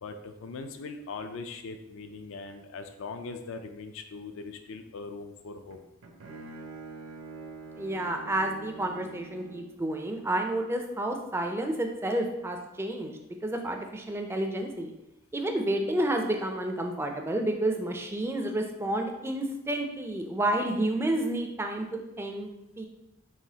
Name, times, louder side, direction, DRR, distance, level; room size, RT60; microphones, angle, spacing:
voice 1, 0.0-5.8, left 4 dB, 65° left, 7 dB, 0.4 m, -40 dB
Bowed string instrument, 5.7-9.9, right 3 dB, 70° right, 0.6 m, -45 dB
voice 2, 7.7-14.9 15.3-22.5 22.8-22.9, right 1 dB, 10° right, 3 dB, 0.4 m, -30 dB
4.9 x 3.0 x 2.8 m, 0.91 s
head